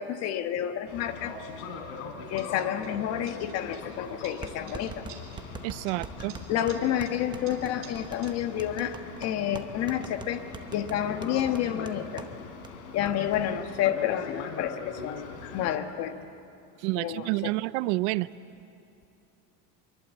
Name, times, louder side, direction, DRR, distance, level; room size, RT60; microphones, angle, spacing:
voice 1, 0.0-1.3 2.3-5.0 6.5-10.4 10.7-12.3 12.9-16.2 17.0-17.5, left 10 dB, 45° left, 8 dB, 1.5 m, -30 dB
Boat Water vehicle, 0.9-15.8, left 5 dB, 80° left, 4.0 m, -41 dB
sound 1, 2.4-3.0 3.3-4.0 4.2-5.6 5.9-8.3, right 7 dB, 35° right, 3.3 m, -52 dB
sound 2, 4.4-12.3 12.6-12.7 13.1-13.4, right 5 dB, 10° right, 0.8 m, -43 dB
voice 2, 5.6-6.3 16.8-18.3, right 21 dB, 70° right, 17 dB, 0.7 m, -29 dB
25.5 x 23.5 x 8.3 m, 2.7 s
cardioid pair, 170°, 36 cm